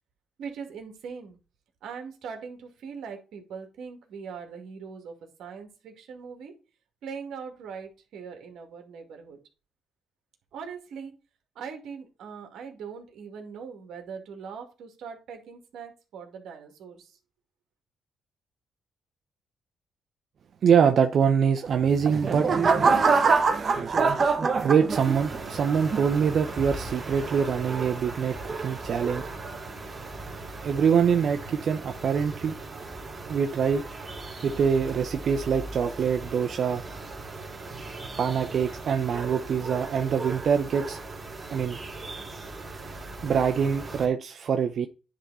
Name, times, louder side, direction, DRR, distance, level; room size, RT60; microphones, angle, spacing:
voice 1, 0.4-1.4 1.8-6.5 7.0-9.4 10.5-11.1 11.6-17.2, right 6 dB, 75° right, 4 dB, 2.2 m, -41 dB
voice 2, 20.6-22.8 24.6-29.3 30.6-32.6 33.3-33.8 34.4-36.8 38.2-41.0 41.5-41.8 43.2-44.9, right 7 dB, 60° right, 6 dB, 0.6 m, -24 dB
sound 1, 21.8-25.4 25.9-26.3, right 4 dB, 45° right, 1.1 m, -23 dB
sound 2, 24.9-44.1, right 3 dB, 25° right, 2.9 m, -38 dB
10.0 x 3.7 x 4.1 m, 0.33 s
cardioid pair, 90°, 0 cm